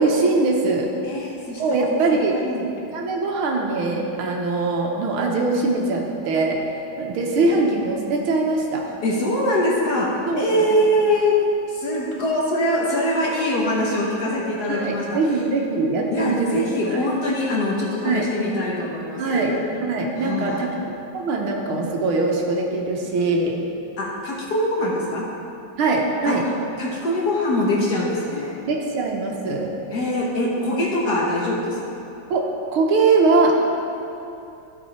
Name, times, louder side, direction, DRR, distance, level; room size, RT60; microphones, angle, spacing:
voice 1, 0.0-0.9 1.6-2.4 2.9-6.6 7.0-8.8 10.3-10.8 14.7-16.4 16.6-17.0 18.0-18.3 19.2-19.5 19.8-20.7 21.1-23.6 25.8-26.4 28.7-29.7 32.3-32.5 32.7-33.6, right 3 dB, 75° right, 0 dB, 1.8 m, -22 dB
voice 2, 1.0-2.7 7.2-7.6 8.9-15.2 16.1-19.6 20.2-20.7 24.0-25.3 26.2-26.4 26.8-28.6 29.9-32.0, left 1 dB, 50° left, -4 dB, 1.6 m, -23 dB
13.5 x 5.3 x 4.3 m, 2.9 s
omnidirectional pair, 2.4 m